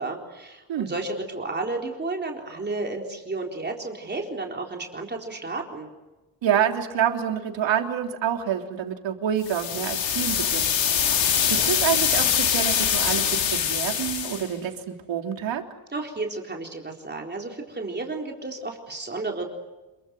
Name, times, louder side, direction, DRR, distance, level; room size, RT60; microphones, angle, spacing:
voice 1, 0.0-5.9 15.9-19.5, right 3 dB, 25° right, 1 dB, 4.0 m, -32 dB
voice 2, 6.4-10.8 11.5-15.6, right 9 dB, 80° right, 4 dB, 3.5 m, -27 dB
sound 1, 9.4-14.5, left 8 dB, 80° left, 4.1 m, -23 dB
28.5 x 23.0 x 7.8 m, 1.1 s
cardioid pair, 125°, 44 cm